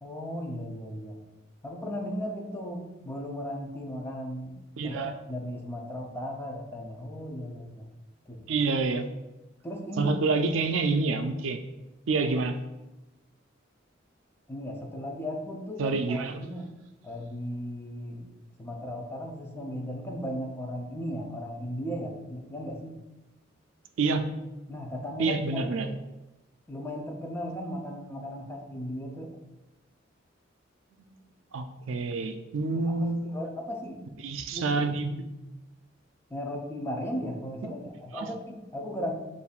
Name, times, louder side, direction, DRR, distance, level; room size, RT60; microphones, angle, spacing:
voice 1, 0.0-1.2 1.6-4.6 4.8-7.9 8.3-8.4 9.6-10.1 11.2-11.3 14.5-16.7 17.0-18.3 18.6-22.9 24.7-25.9 26.7-29.4 32.8-34.0 34.5-34.8 36.3-39.1, equal, 10° left, 0 dB, 0.5 m, -36 dB
voice 2, 4.8-5.1 8.5-9.1 10.0-11.6 12.1-12.6 15.8-16.4 24.0-24.2 25.2-25.9 31.5-33.3 34.2-35.2 37.6-37.7 38.1-38.3, right 3 dB, 85° right, 8 dB, 0.4 m, -27 dB
6.8 x 2.6 x 2.4 m, 1.0 s
head